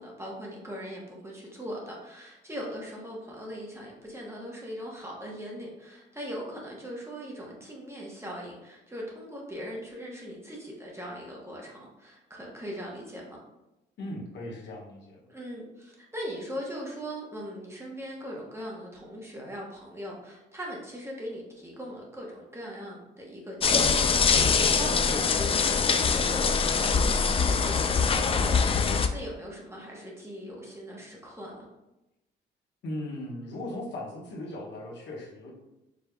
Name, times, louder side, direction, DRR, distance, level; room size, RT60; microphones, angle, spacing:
voice 1, 0.0-13.4 15.3-31.6, equal, 15° right, -2 dB, 1.1 m, -40 dB
voice 2, 14.0-15.3 32.8-35.5, left 1 dB, 60° left, -3 dB, 1.2 m, -38 dB
sound 1, 23.6-29.1, left 5 dB, 30° left, 0.3 m, -23 dB
5.0 x 3.3 x 2.3 m, 0.95 s
cardioid pair, 90°, 20 cm